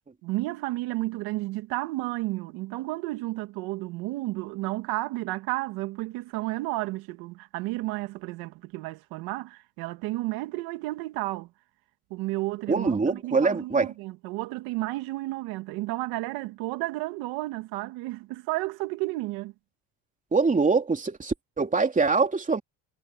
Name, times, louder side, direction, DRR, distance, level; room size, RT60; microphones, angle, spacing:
voice 1, 0.2-11.5 12.1-19.5, right 19 dB, 85° right, 2.2 m, -32 dB
voice 2, 12.7-13.9 20.3-22.6, right 4 dB, 20° right, 3.4 m, -24 dB
cardioid pair, 100°, 35 cm